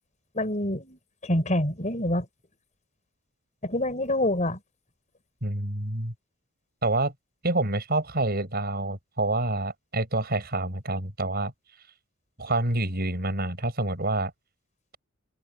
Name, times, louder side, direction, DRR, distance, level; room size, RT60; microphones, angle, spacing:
voice 1, 0.3-2.3 3.6-4.6, left 1 dB, 35° left, 5.7 m, -26 dB
voice 2, 5.4-6.1 6.8-7.1 7.4-11.5 12.4-14.3, right 2 dB, 45° right, 6.8 m, -27 dB
open air
head